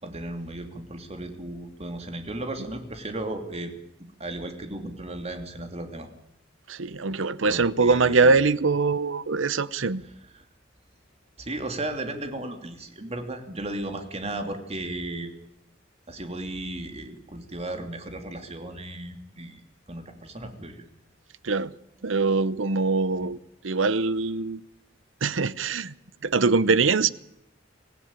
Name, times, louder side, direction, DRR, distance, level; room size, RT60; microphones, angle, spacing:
voice 1, 0.0-3.7 4.2-6.1 7.5-8.5 10.0-10.4 11.4-15.4 16.1-19.6 19.9-20.8, right 1 dB, 35° right, 2.9 m, -35 dB
voice 2, 6.7-10.0 21.4-21.7 22.0-23.4 23.6-24.6 25.2-25.9 26.2-27.1, right 4 dB, 75° right, 0.9 m, -23 dB
24.0 x 16.5 x 9.0 m
head